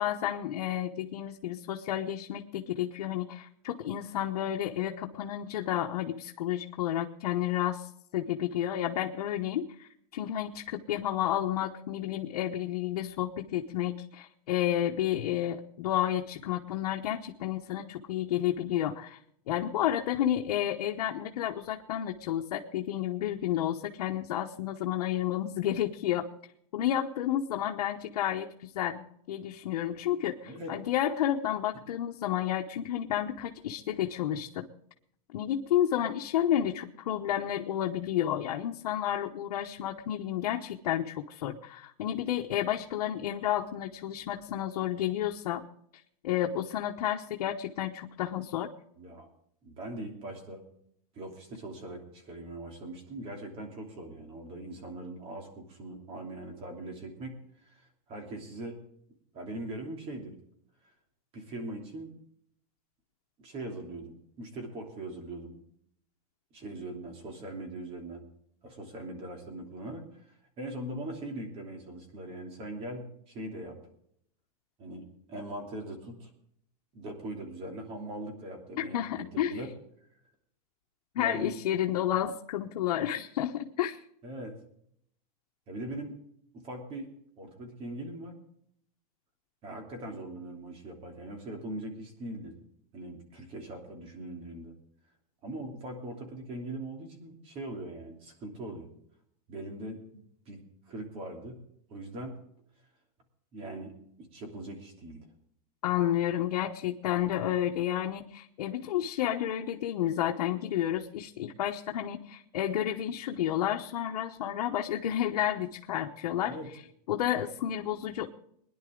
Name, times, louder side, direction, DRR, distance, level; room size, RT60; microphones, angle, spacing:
voice 1, 0.0-7.9 8.1-19.2 19.5-26.2 26.7-34.7 35.3-45.6 46.2-48.7 78.8-79.6 81.1-84.0 105.8-116.6 117.1-118.3, left 11 dB, 80° left, 2 dB, 1.1 m, -31 dB
voice 2, 49.0-49.3 49.6-50.6 51.1-57.8 58.1-58.8 59.3-60.4 61.3-62.1 63.4-65.6 66.5-68.3 68.6-70.2 70.6-73.8 74.8-76.3 76.9-79.7 81.2-81.5 84.2-84.6 85.7-86.2 86.5-87.1 87.4-88.3 89.6-92.6 92.9-94.7 95.4-98.9 99.5-100.6 100.9-101.6 101.9-102.4 103.5-105.2 116.4-116.7, right 1 dB, 30° right, 2 dB, 3.0 m, -41 dB
21.0 x 10.5 x 3.8 m, 0.70 s
supercardioid pair, 160°, 20 cm